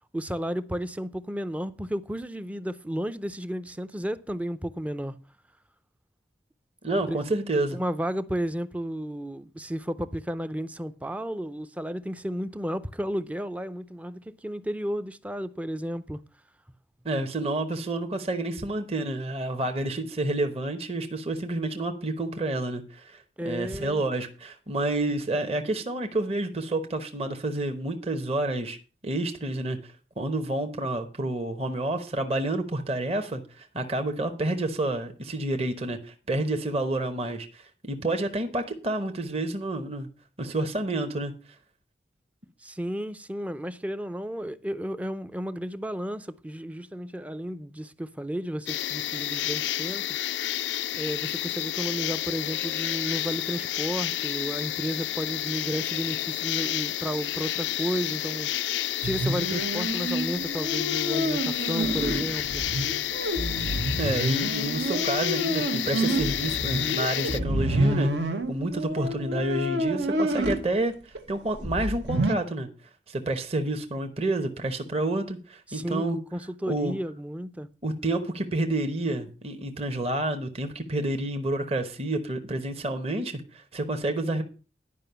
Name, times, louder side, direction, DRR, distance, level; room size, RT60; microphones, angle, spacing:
voice 1, 0.1-5.2 7.1-7.2 7.7-16.2 23.4-24.0 42.6-50.2 50.9-58.5 59.0-62.6 75.7-77.7, equal, 10° right, 0.4 m, -33 dB
voice 2, 6.8-7.8 17.0-28.8 29.0-40.1 40.4-41.3 64.0-68.1 68.5-72.7 73.1-76.2 76.7-77.0 77.8-84.4, right 2 dB, 35° right, 0.9 m, -29 dB
sound 1, 48.7-67.4, left 12 dB, 90° left, 0.4 m, -30 dB
sound 2, 59.0-70.6 71.1-71.2 71.6-72.3, right 1 dB, 80° right, 1.2 m, -28 dB
11.0 x 5.4 x 6.8 m
head